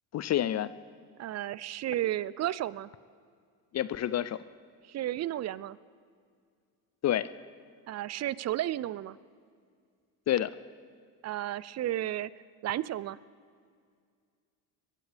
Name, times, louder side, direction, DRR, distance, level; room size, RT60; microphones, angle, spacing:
voice 1, 0.1-0.7 3.7-4.4 7.0-7.3 10.3-10.5, left 11 dB, 40° left, 16 dB, 0.5 m, -28 dB
voice 2, 1.2-2.9 4.9-5.8 7.9-9.2 11.2-12.3 12.6-13.2, right 13 dB, 40° right, 19 dB, 0.4 m, -33 dB
21.5 x 16.0 x 3.4 m, 2.2 s
supercardioid pair, 80°, 44 cm